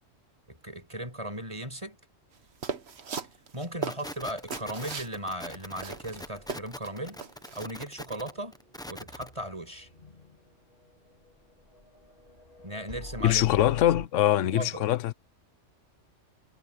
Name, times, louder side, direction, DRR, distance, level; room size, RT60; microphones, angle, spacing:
voice 1, 0.5-2.0 3.5-7.2 7.5-8.6 8.9-9.9 12.6-13.4 14.4-14.8, right 1 dB, 25° right, 5.7 m, -37 dB
sound 1, 2.6-5.1 5.5-5.6 5.8-6.9 7.2-7.6, right 5 dB, 60° right, 1.5 m, -37 dB
sound 2, 3.8-9.3, equal, 5° left, 0.9 m, -42 dB
sound 3, 5.8-14.1, left 1 dB, 45° left, 4.2 m, -49 dB
voice 2, 13.2-15.1, left 12 dB, 80° left, 1.0 m, -23 dB
omnidirectional pair, 1.3 m